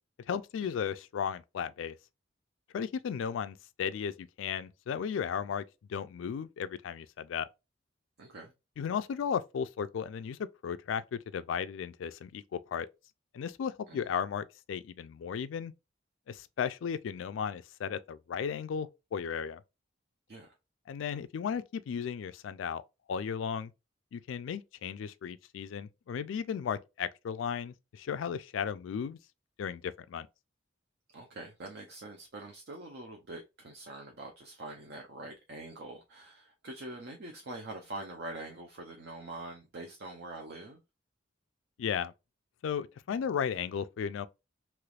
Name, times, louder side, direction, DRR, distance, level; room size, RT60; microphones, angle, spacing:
voice 1, 0.3-2.0 2.7-5.6 5.9-7.5 8.8-12.9 13.3-15.7 16.3-19.6 20.9-22.8 23.1-23.7 24.1-29.2 29.6-30.3 41.8-42.1 42.6-44.3, left 7 dB, 80° left, 0.3 m, -35 dB
voice 2, 8.2-8.5 13.9-14.1 20.3-20.5 31.1-40.8, right 2 dB, 60° right, 0.6 m, -44 dB
3.2 x 3.0 x 2.3 m
head